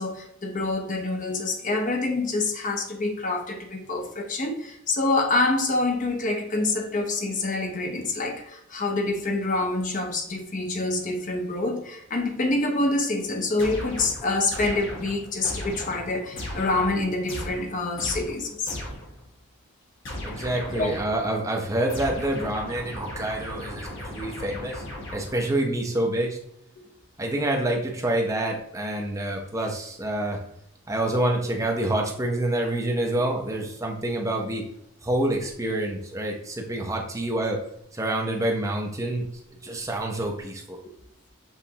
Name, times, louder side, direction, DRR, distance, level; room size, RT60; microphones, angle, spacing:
voice 1, 0.0-18.8 20.7-20.9, left 2 dB, 35° left, 3 dB, 0.6 m, -26 dB
sound 1, 13.6-19.2 20.0-21.3 21.9-25.6, left 1 dB, 55° left, 1.1 m, -37 dB
voice 2, 20.2-24.8 25.1-26.4 27.2-30.4 30.9-34.6 35.0-37.6 37.9-39.3 39.6-40.8, right 1 dB, 15° right, 0 dB, 0.7 m, -27 dB
7.0 x 2.5 x 2.8 m, 0.74 s
head